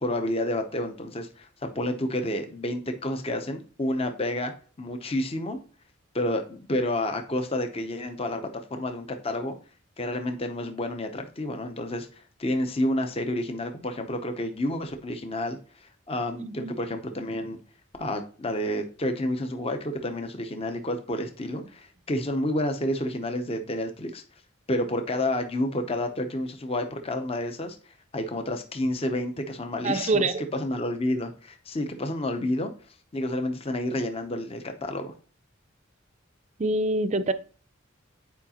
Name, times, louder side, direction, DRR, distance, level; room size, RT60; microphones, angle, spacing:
voice 1, 0.0-4.5 4.8-5.6 6.1-9.6 10.0-17.6 18.0-24.2 24.7-32.7 33.1-35.1, left 1 dB, 30° left, 6 dB, 0.7 m, -30 dB
voice 2, 16.4-16.7 29.8-30.4 36.6-37.3, right 2 dB, 35° right, 13 dB, 0.5 m, -25 dB
9.3 x 4.8 x 2.9 m, 0.40 s
head